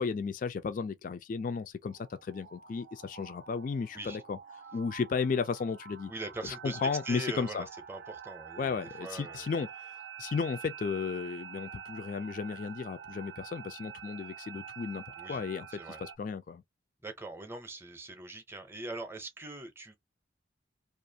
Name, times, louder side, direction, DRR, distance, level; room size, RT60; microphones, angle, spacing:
voice 1, 0.0-4.4 4.7-6.1 6.4-7.7 8.6-15.7 16.0-16.6, left 5 dB, 45° left, 0.3 m, -34 dB
sound 1, 1.8-16.2, right 7 dB, 80° right, 0.5 m, -47 dB
voice 2, 6.1-6.8 7.0-9.5 15.2-15.4 15.8-16.0 17.0-20.0, right 2 dB, 15° right, 0.6 m, -42 dB
2.4 x 2.4 x 2.7 m
head